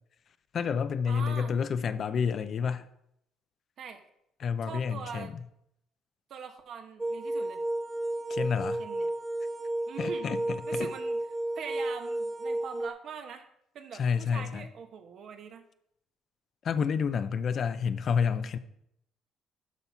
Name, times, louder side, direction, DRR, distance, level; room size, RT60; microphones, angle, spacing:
voice 1, 0.5-2.9 4.4-5.3 8.3-8.8 10.0-10.9 13.9-14.7 16.6-18.6, left 6 dB, 45° left, 0.5 m, -29 dB
voice 2, 1.1-1.5 3.8-4.0 4.6-5.3 6.3-7.6 8.4-8.5 8.8-9.1 9.9-10.3 10.7-11.2 11.5-13.5 13.7-15.6, right 6 dB, 55° right, 1.1 m, -42 dB
sound 1, 7.0-12.9, right 1 dB, 15° right, 0.4 m, -32 dB
12.5 x 4.1 x 5.8 m
cardioid pair, 105°, 0 cm